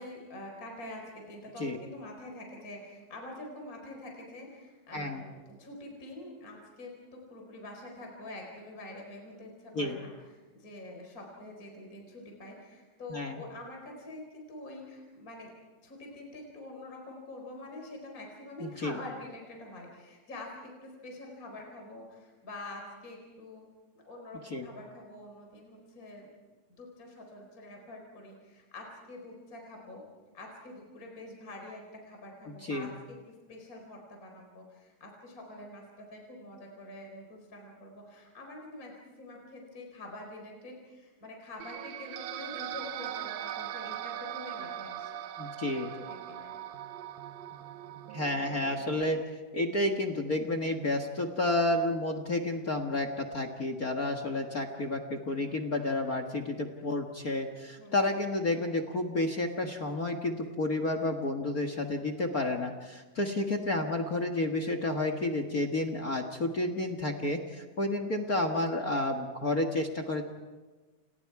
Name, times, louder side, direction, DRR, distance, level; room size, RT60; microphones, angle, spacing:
voice 1, 0.0-15.5 15.8-23.6 23.9-26.3 26.8-30.0 30.3-32.9 33.5-46.6 57.8-58.0 68.1-68.3, left 2 dB, 25° left, 1 dB, 4.6 m, -46 dB
voice 2, 4.9-5.2 9.7-10.0 13.1-13.4 18.6-19.0 24.4-24.7 32.6-32.9 45.4-45.9 48.1-49.2 49.5-70.2, left 2 dB, 45° left, 6 dB, 1.2 m, -31 dB
sound 1, 41.6-49.2, right 11 dB, 90° right, 2.7 m, -40 dB
30.0 x 29.0 x 4.8 m, 1.3 s
omnidirectional pair, 3.8 m